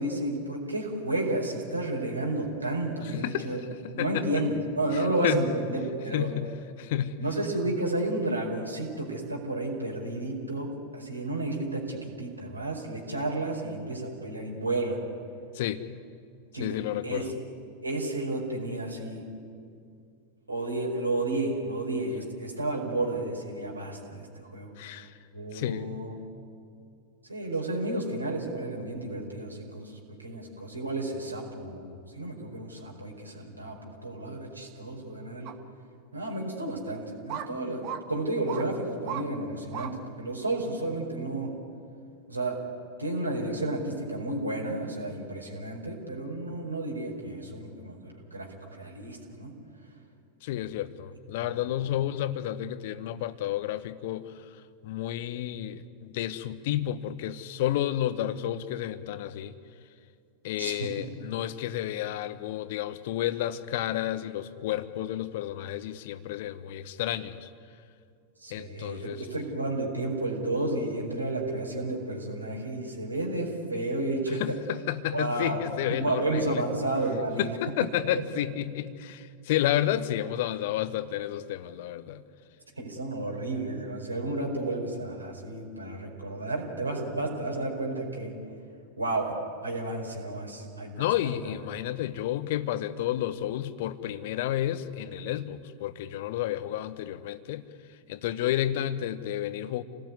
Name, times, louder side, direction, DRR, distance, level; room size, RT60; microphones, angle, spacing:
voice 1, 0.0-3.7 3.9-6.3 7.2-15.0 16.5-17.3 17.8-19.2 20.5-24.7 25.3-26.1 27.3-35.5 36.1-41.5 42.3-42.6 43.0-49.5 51.4-51.9 60.6-60.9 68.4-74.6 75.1-75.6 75.9-77.7 82.8-88.4 89.0-89.3 89.6-91.5, right 2 dB, 85° right, -1 dB, 4.8 m, -32 dB
voice 2, 3.0-3.5 3.8-4.4 4.9-5.4 6.1-7.2 15.5-15.8 16.6-17.3 24.8-25.1 25.5-25.9 50.4-54.3 54.8-59.5 60.4-67.5 68.5-69.2 74.4-76.7 77.4-82.2 91.0-97.6 98.1-99.8, left 12 dB, 50° left, 13 dB, 1.2 m, -31 dB
sound 1, 35.5-35.6 36.3-36.4 37.3-37.5 37.8-38.0 38.5-38.7 39.1-39.3 39.7-39.9 40.4-40.5, right 10 dB, 45° right, 1.6 m, -36 dB
28.5 x 18.0 x 9.6 m, 2.4 s
figure-of-eight pair, 90°, 0 cm